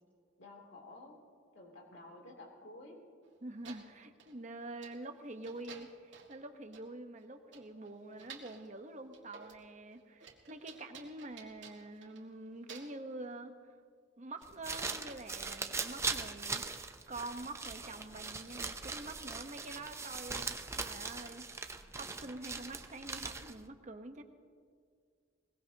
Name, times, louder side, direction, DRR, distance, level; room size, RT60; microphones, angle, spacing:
voice 1, 0.4-1.2 1.5-3.0, left 2 dB, 85° left, 0 dB, 3.0 m, -52 dB
sound 1, 3.2-3.3 3.6-4.4 4.8-5.1 5.4-6.4 6.7-6.9 7.2-7.3 7.5-8.7 9.1-9.7 9.9-12.3 12.7-13.1 14.4-14.5 15.1-15.2, right 6 dB, 85° right, 2.0 m, -54 dB
voice 2, 3.4-13.8 14.2-16.6 17.1-21.5 21.9-24.2, right 2 dB, 40° right, 6 dB, 1.1 m, -46 dB
sound 2, 14.4-23.7, right 4 dB, 15° right, 0.7 m, -40 dB
22.0 x 20.5 x 2.9 m, 2.1 s
head